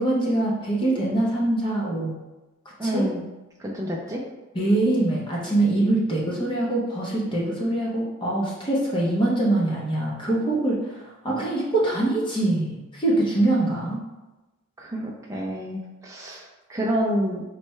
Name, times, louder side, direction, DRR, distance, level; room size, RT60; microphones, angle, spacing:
voice 1, 0.0-2.2 2.8-3.1 4.5-14.0, right 2 dB, 25° left, -5 dB, 0.9 m, -23 dB
voice 2, 2.8-3.2 3.6-4.2 14.8-17.4, equal, 15° right, -3 dB, 0.5 m, -28 dB
4.2 x 3.3 x 3.2 m, 1.1 s
head